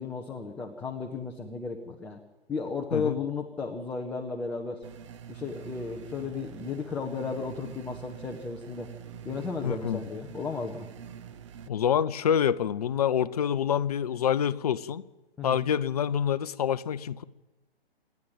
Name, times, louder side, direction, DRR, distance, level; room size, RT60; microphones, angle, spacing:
voice 1, 0.0-2.2 2.5-4.8 5.3-8.9 9.2-10.9 15.4-15.7, left 4 dB, 5° left, 0.8 m, -34 dB
sound 1, 4.8-11.7, right 8 dB, 30° right, 0.8 m, -45 dB
voice 2, 9.6-10.0 11.7-15.0 15.4-17.2, left 8 dB, 40° left, 0.8 m, -27 dB
27.5 x 10.5 x 9.1 m
figure-of-eight pair, 130°, 31 cm